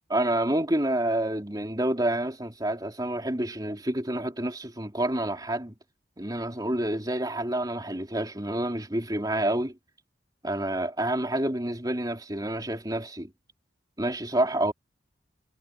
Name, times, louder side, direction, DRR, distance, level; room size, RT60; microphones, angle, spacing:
voice 1, 0.1-5.7 6.2-9.8 10.4-13.3 14.0-14.7, right 1 dB, 20° right, 3.3 m, -28 dB
head